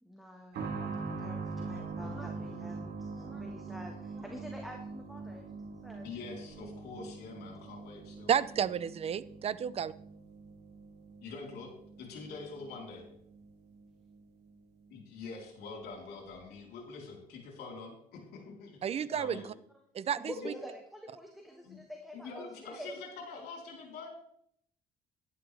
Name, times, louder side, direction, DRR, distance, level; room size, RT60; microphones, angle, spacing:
voice 1, 0.0-5.5 5.8-6.1 20.2-23.0, equal, ahead, 2 dB, 1.5 m, -47 dB
sound 1, 0.5-15.0 15.2-15.3 16.3-16.4, right 4 dB, 75° right, 2.4 m, -43 dB
voice 2, 1.6-2.6 6.0-8.3 11.2-11.7 12.0-13.0 14.9-19.5 20.2-20.6 21.6-21.8 22.1-24.1, left 4 dB, 75° left, 0 dB, 3.7 m, -45 dB
voice 3, 8.3-9.9 18.8-19.4 19.9-20.5, right 8 dB, 35° right, 17 dB, 0.5 m, -31 dB
11.0 x 11.0 x 3.4 m, 0.68 s
cardioid pair, 110°, 17 cm